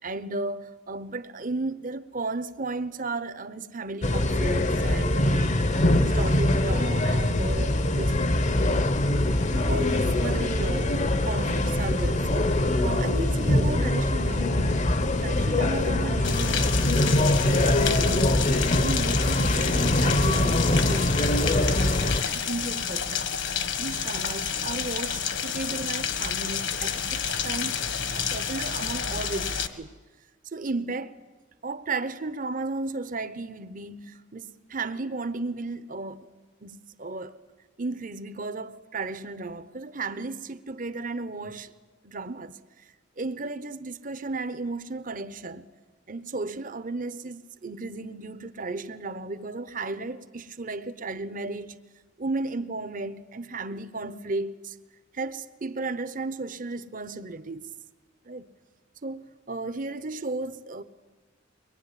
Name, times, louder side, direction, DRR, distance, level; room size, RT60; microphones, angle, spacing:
voice 1, 0.0-5.5 6.0-8.2 9.5-18.4 18.8-23.2 23.8-29.9 30.4-31.2 31.6-36.3 36.6-37.4 37.8-41.7 42.0-42.6 43.2-45.6 46.1-51.8 52.2-54.8 55.1-57.7 58.2-58.5 59.0-60.8, right 3 dB, 45° right, 1.0 m, -34 dB
sound 1, 4.0-22.2, left 1 dB, 35° left, 0.9 m, -23 dB
Rain, 16.2-29.7, left 7 dB, 60° left, 1.6 m, -30 dB
23.5 x 21.0 x 10.0 m
head